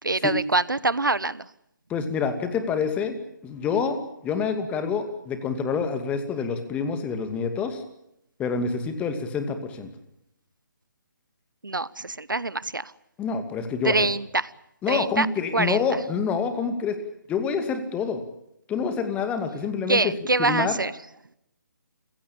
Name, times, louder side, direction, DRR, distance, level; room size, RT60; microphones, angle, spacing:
voice 1, 0.0-1.5 11.6-12.9 13.8-14.5 14.9-15.3 15.5-15.8 19.9-20.9, right 3 dB, 85° right, 19 dB, 1.0 m, -24 dB
voice 2, 1.9-3.2 3.4-4.0 4.2-7.8 8.4-9.9 13.2-14.0 14.8-17.0 17.3-18.2 18.7-20.1 20.4-20.8, left 6 dB, 10° left, 8 dB, 2.4 m, -27 dB
29.5 x 16.5 x 8.8 m, 0.80 s
figure-of-eight pair, 145°, 11 cm